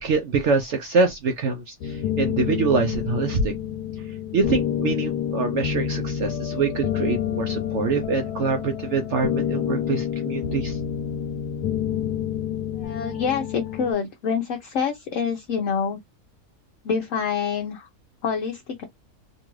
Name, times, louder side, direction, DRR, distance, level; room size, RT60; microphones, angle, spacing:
voice 1, 0.0-3.5 4.3-10.8, right 4 dB, 65° right, 0.7 m, -25 dB
sound 1, 1.8-13.9, left 9 dB, 90° left, 1.2 m, -28 dB
voice 2, 12.8-16.0 16.8-17.9 18.2-18.8, left 6 dB, 65° left, 0.9 m, -26 dB
3.0 x 2.4 x 3.0 m
omnidirectional pair, 1.7 m